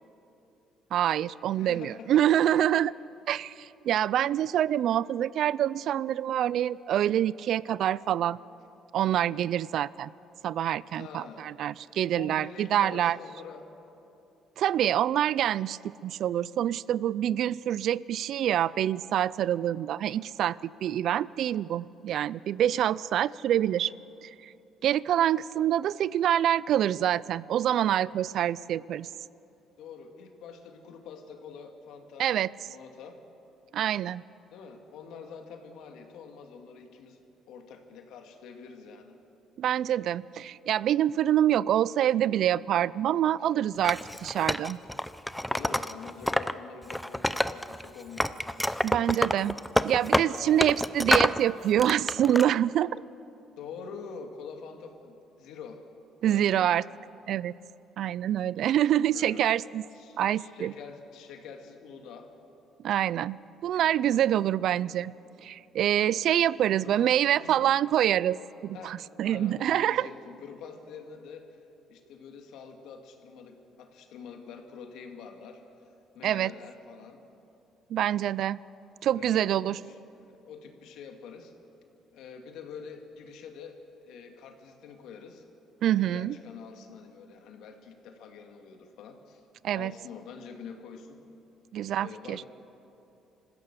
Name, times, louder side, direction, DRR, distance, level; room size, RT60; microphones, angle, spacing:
voice 1, 0.9-2.9 3.3-8.4 8.9-10.1 10.4-13.2 14.6-23.9 24.2-24.5 24.8-29.1 32.2-32.5 33.7-34.2 39.6-44.8 48.8-49.6 49.8-53.0 56.2-56.8 57.3-57.5 58.0-59.8 60.2-60.7 62.8-65.1 65.4-70.1 76.2-76.5 77.9-78.6 79.0-79.8 85.8-86.4 89.6-89.9 91.7-92.4, right 11 dB, 65° right, 21 dB, 0.4 m, -26 dB
voice 2, 1.5-2.2 11.0-11.5 12.1-13.7 29.8-32.3 32.6-33.2 34.5-37.2 37.5-39.2 43.4-43.5 45.2-48.3 50.4-50.8 53.6-55.8 56.2-56.7 59.1-59.5 59.9-62.3 64.1-64.4 66.8-67.6 68.7-71.6 71.9-75.6 76.1-77.3 79.1-80.0 80.4-81.5 82.1-85.4 86.0-89.4 89.7-91.2 92.0-92.4, left 6 dB, 80° left, 5 dB, 2.2 m, -46 dB
Wood, 43.8-46.5 46.8-47.9 48.2-51.4 51.8-52.5, left 1 dB, 5° left, 0.5 m, -27 dB
26.5 x 15.5 x 6.8 m, 2.9 s
cardioid pair, 120°, 0 cm